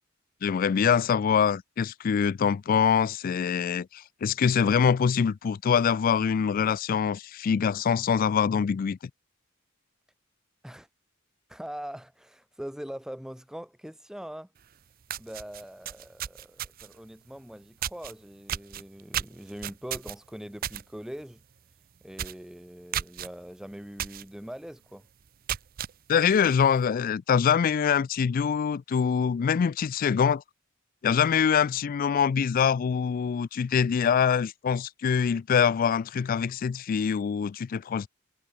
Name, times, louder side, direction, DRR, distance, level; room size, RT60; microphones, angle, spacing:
voice 1, 0.4-9.0 26.1-30.4 31.0-38.1, left 7 dB, 45° left, 0.3 m, -24 dB
voice 2, 11.5-14.5 15.2-21.4 22.0-25.1, equal, 5° right, 0.6 m, -42 dB
sound 1, 14.6-14.7 15.0-17.0 17.8-18.1 18.5-20.8 21.2-21.4 21.7-21.8 22.1-22.4 22.9-23.3 24.0-24.2 24.7-24.8 25.3-25.9, right 10 dB, 45° right, 0.5 m, -33 dB
head